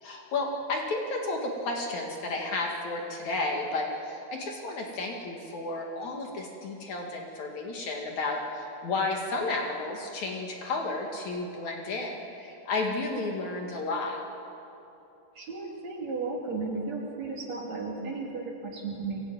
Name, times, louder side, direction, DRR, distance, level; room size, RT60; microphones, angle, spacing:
voice 1, 0.0-14.2, left 2 dB, 55° left, 1 dB, 2.9 m, -32 dB
voice 2, 15.4-19.2, right 3 dB, 50° right, -2 dB, 4.1 m, -34 dB
23.0 x 17.0 x 9.2 m, 3.0 s
omnidirectional pair, 4.2 m